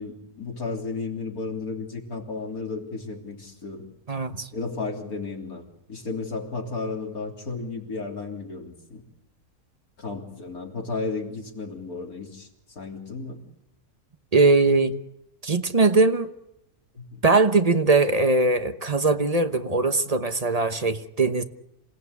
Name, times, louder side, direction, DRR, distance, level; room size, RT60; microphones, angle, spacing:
voice 1, 0.0-3.9 4.5-5.6 5.9-9.0 10.0-12.5 12.8-13.4 17.0-17.2, left 4 dB, 80° left, 1 dB, 3.9 m, -33 dB
voice 2, 4.1-4.5 14.3-14.9 15.4-16.3 17.2-21.4, right 3 dB, 30° right, 9 dB, 1.0 m, -21 dB
27.5 x 17.5 x 8.4 m, 0.85 s
omnidirectional pair, 1.5 m